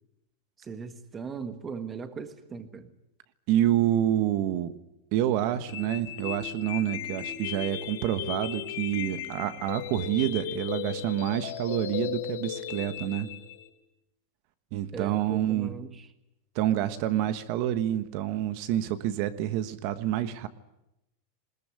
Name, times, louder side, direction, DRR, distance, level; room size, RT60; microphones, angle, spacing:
voice 1, 0.6-2.9 14.9-16.1, right 5 dB, 15° right, 10 dB, 1.5 m, -39 dB
voice 2, 3.5-4.7 5.1-13.3 14.7-15.7 16.5-20.5, right 12 dB, 40° right, 11 dB, 1.3 m, -28 dB
sound 1, 5.7-13.7, left 11 dB, 60° left, 3.7 m, -36 dB
21.5 x 20.5 x 9.5 m, 0.88 s
supercardioid pair, 175°, 0 cm